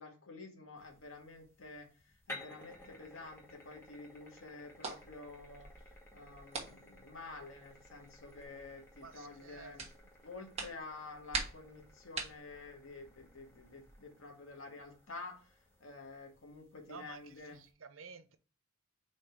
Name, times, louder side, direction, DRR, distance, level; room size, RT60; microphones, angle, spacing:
voice 1, 0.0-1.9 2.3-5.7 6.1-9.9 10.2-17.6, left 3 dB, 85° left, 1.7 m, -50 dB
sound 1, 0.8-17.7, left 2 dB, 10° left, 1.3 m, -57 dB
sound 2, 2.7-14.0, right 4 dB, 30° right, 1.3 m, -47 dB
voice 2, 9.0-9.7 16.9-18.4, right 5 dB, 80° right, 0.7 m, -52 dB
5.1 x 4.1 x 4.7 m
head